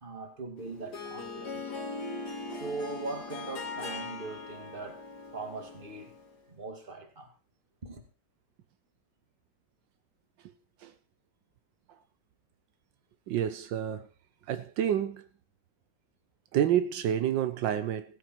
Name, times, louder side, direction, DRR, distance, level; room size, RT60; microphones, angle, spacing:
voice 1, 0.0-1.6 2.6-5.1 5.3-6.1 6.5-7.3 7.8-8.0, right 3 dB, 30° right, 2.3 m, -40 dB
Harp, 0.6-6.4, left 3 dB, 65° left, 2.5 m, -40 dB
voice 2, 13.3-14.1 14.5-15.2 16.5-18.2, right 10 dB, 85° right, 1.5 m, -29 dB
16.0 x 9.7 x 4.6 m
omnidirectional pair, 1.9 m